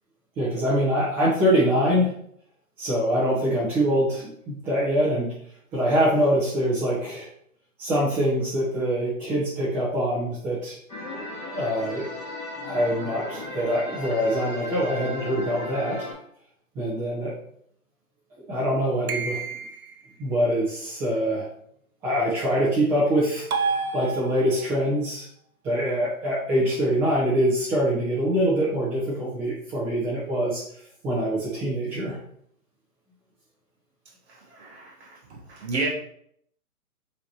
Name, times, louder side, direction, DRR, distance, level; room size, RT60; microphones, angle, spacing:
voice 1, 0.4-2.1 2.8-5.3 5.7-7.3 7.8-10.8 11.5-12.1 12.6-16.1 16.7-17.3 18.5-19.5 20.2-21.5 22.0-25.3 25.6-30.6 31.0-32.2, equal, 15° right, -11 dB, 1.0 m, -24 dB
sound 1, 10.9-16.1, left 2 dB, 10° left, 1.3 m, -35 dB
sound 2, 19.1-20.0 23.5-24.7, right 4 dB, 75° right, 0.8 m, -29 dB
voice 2, 34.3-35.9, right 3 dB, 50° right, -1 dB, 0.9 m, -32 dB
5.6 x 3.3 x 2.9 m, 0.67 s
hypercardioid pair, 150°, 44 cm